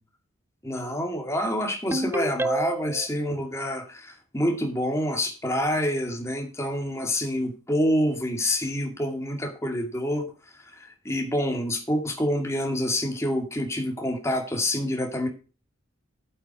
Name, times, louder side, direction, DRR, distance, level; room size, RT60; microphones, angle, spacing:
voice 1, 0.6-10.3 10.7-15.3, left 1 dB, 15° left, 3 dB, 2.3 m, -27 dB
Ringtone, 1.9-3.1, right 2 dB, 10° right, 0.4 m, -28 dB
9.1 x 8.3 x 4.6 m, 0.33 s
head